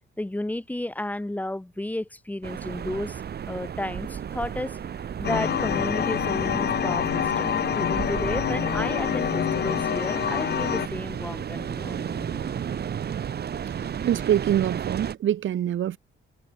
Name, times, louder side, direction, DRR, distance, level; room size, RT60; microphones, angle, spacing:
voice 1, 0.2-3.2 3.5-12.6, left 1 dB, 5° left, 6.5 m, -33 dB
sound 1, 2.4-15.1, right 8 dB, 50° right, 4.0 m, -33 dB
sound 2, 5.2-10.9, left 9 dB, 50° left, 2.9 m, -26 dB
voice 2, 13.8-16.0, right 11 dB, 65° right, 3.4 m, -25 dB
cardioid pair, 150°, 21 cm